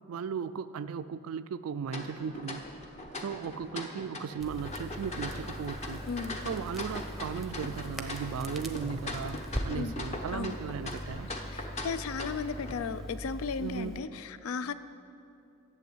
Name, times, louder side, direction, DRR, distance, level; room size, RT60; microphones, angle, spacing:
voice 1, 0.1-2.7 3.1-6.0 6.4-11.3 13.6-14.0, right 6 dB, 70° right, 11 dB, 0.3 m, -36 dB
sound 1, 1.9-12.7, left 2 dB, 30° left, 0.9 m, -41 dB
Crackle, 4.4-14.0, equal, ahead, 0.7 m, -41 dB
voice 2, 6.0-6.4 9.7-9.9 10.3-10.6 11.5-14.7, left 5 dB, 70° left, 14 dB, 0.4 m, -35 dB
12.0 x 7.5 x 7.9 m, 2.7 s
head